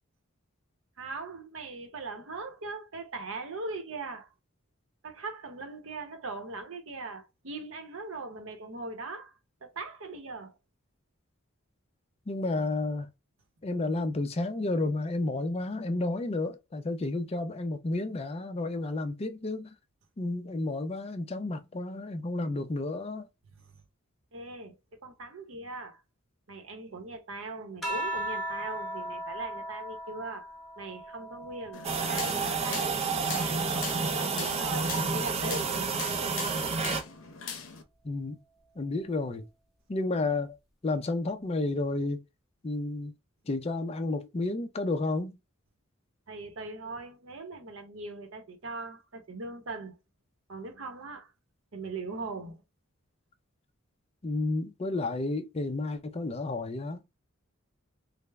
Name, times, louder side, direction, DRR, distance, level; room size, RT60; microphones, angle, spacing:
voice 1, 1.0-4.3 5.0-10.5 23.5-23.8 24.3-26.0 26.5-30.5 30.8-33.0 33.3-36.4 46.3-50.0 50.5-51.3 51.7-52.6, right 3 dB, 70° right, 0.8 m, -40 dB
voice 2, 12.3-13.1 13.6-19.7 20.2-23.3 38.0-38.4 38.8-39.4 39.9-40.6 40.8-42.2 42.6-43.1 43.5-45.4 54.2-57.0, left 2 dB, 30° left, 0.4 m, -31 dB
sound 1, 27.8-32.6 33.1-34.8 36.0-36.5, right 1 dB, ahead, 0.9 m, -39 dB
sound 2, 31.7-37.8, left 6 dB, 75° left, 0.6 m, -41 dB
sound 3, 31.8-37.0, right 4 dB, 30° right, 0.5 m, -30 dB
3.3 x 2.0 x 3.3 m
head